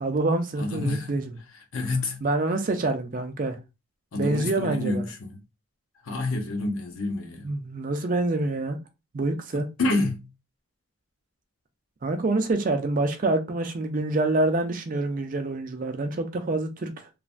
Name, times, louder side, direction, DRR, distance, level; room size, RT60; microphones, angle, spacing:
voice 1, 0.0-1.3 2.2-3.6 4.1-5.0 7.4-8.8 9.1-9.7 12.0-17.1, right 2 dB, 40° right, 0.4 m, -26 dB
voice 2, 0.6-1.3 1.7-2.2 4.1-5.4 6.0-7.5 9.5-10.3, left 2 dB, 75° left, 0.7 m, -28 dB
3.1 x 2.1 x 2.4 m
head